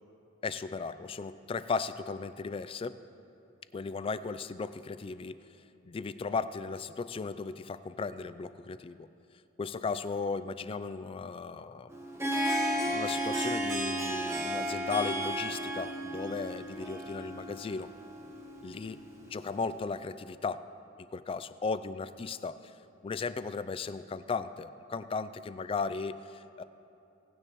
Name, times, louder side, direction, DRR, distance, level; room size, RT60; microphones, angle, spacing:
voice 1, 0.4-3.0 3.7-5.4 5.8-9.1 9.6-11.9 12.8-17.9 18.6-19.0 19.3-20.7 21.1-22.7 23.0-26.6, left 4 dB, 30° left, 13 dB, 0.3 m, -36 dB
Harp, 11.9-19.7, equal, 15° right, 1.1 m, -34 dB
18.0 x 9.7 x 3.0 m, 2.8 s
head